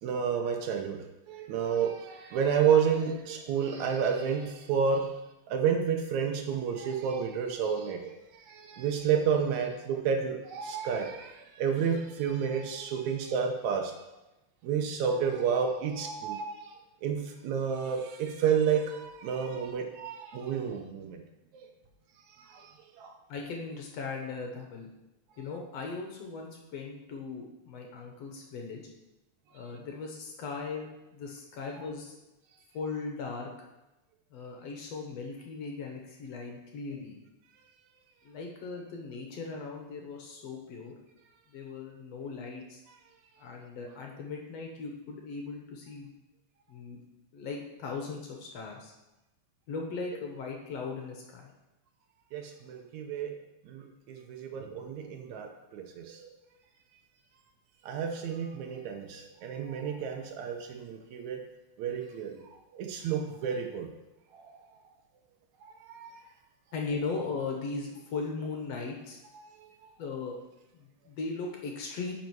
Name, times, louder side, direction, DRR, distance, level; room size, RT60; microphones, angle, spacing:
voice 1, 0.0-5.1 5.5-13.9 14.6-21.2 21.5-21.7 22.4-23.1 52.3-53.4 53.7-56.3 57.8-61.4 61.8-63.9 64.3-64.6 65.6-66.3 69.4-69.5, right 7 dB, 75° right, 4 dB, 2.0 m, -31 dB
voice 2, 23.3-24.9 25.4-28.8 29.5-32.1 32.7-33.5 34.3-37.2 38.2-40.9 41.5-42.8 43.4-46.1 46.7-47.0 47.3-48.9 49.7-51.5 66.7-69.2 70.0-70.4 70.7-72.1, left 4 dB, 65° left, 1 dB, 1.9 m, -38 dB
9.9 x 5.3 x 4.6 m, 0.98 s
omnidirectional pair, 3.6 m